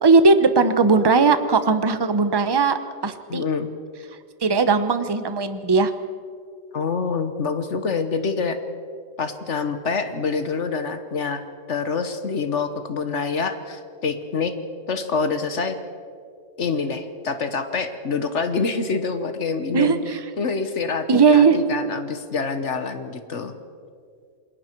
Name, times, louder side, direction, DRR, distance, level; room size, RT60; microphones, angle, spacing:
voice 1, 0.0-3.4 4.4-5.9 19.7-20.2 21.1-21.6, right 4 dB, 25° right, 10 dB, 0.8 m, -18 dB
voice 2, 3.3-3.7 6.7-8.6 9.2-14.5 14.9-15.8 16.6-20.0 20.4-23.5, left 4 dB, 70° left, 9 dB, 1.5 m, -26 dB
28.5 x 21.0 x 4.6 m, 2.2 s
omnidirectional pair, 1.3 m